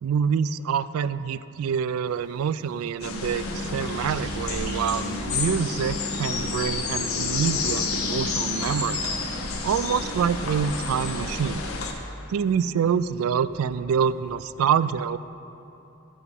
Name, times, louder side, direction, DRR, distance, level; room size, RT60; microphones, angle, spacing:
voice 1, 0.0-9.0 9.6-11.6 12.3-15.2, right 7 dB, 80° right, 16 dB, 0.3 m, -26 dB
sound 1, 2.0-7.2, right 1 dB, 40° right, 1.8 m, -47 dB
sound 2, 3.0-11.9, left 3 dB, 80° left, 0.9 m, -29 dB
sound 3, 8.5-14.6, equal, 20° right, 1.6 m, -49 dB
12.0 x 4.9 x 5.4 m, 2.9 s
head